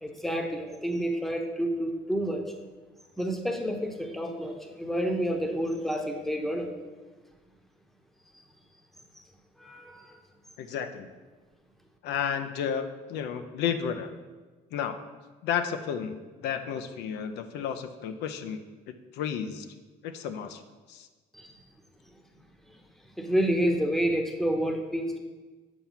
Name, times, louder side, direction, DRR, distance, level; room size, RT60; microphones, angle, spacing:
voice 1, 0.0-2.5 3.2-6.7 9.2-9.3 9.6-10.2 21.3-21.6 23.1-25.2, equal, ahead, 3 dB, 0.8 m, -29 dB
voice 2, 10.6-11.1 12.0-14.1 14.7-15.0 15.4-18.6 19.1-19.7 20.0-20.6 20.9-21.1, left 8 dB, 85° left, 8 dB, 0.5 m, -32 dB
7.3 x 4.5 x 5.7 m, 1.3 s
cardioid pair, 110°, 17 cm